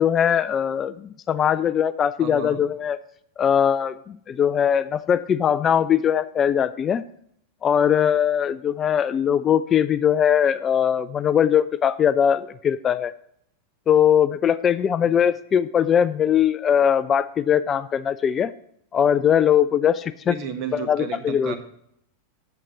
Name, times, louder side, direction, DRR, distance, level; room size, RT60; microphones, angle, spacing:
voice 1, 0.0-3.0 3.4-7.0 7.6-13.1 13.9-18.5 18.9-20.3 20.7-21.6, left 8 dB, 25° left, 14 dB, 0.3 m, -20 dB
voice 2, 2.2-2.6 15.0-15.2 20.2-21.6, right 7 dB, 40° right, 8 dB, 1.4 m, -33 dB
8.7 x 7.0 x 5.9 m, 0.71 s
figure-of-eight pair, 90°, 0 cm